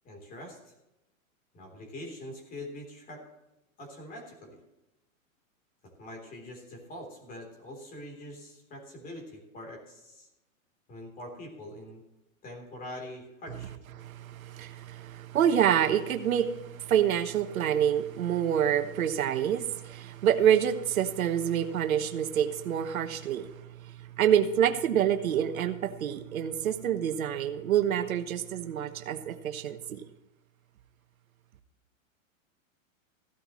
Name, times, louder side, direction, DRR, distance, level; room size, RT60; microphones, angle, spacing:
voice 1, 0.0-0.7 1.5-3.2 3.8-4.6 6.0-10.3 10.9-12.0 12.4-13.7, left 1 dB, 20° left, 3.5 m, -44 dB
voice 2, 14.0-23.5 24.2-30.0, right 9 dB, 85° right, 1.3 m, -27 dB
15.5 x 12.5 x 3.1 m
hypercardioid pair, 150°, 41 cm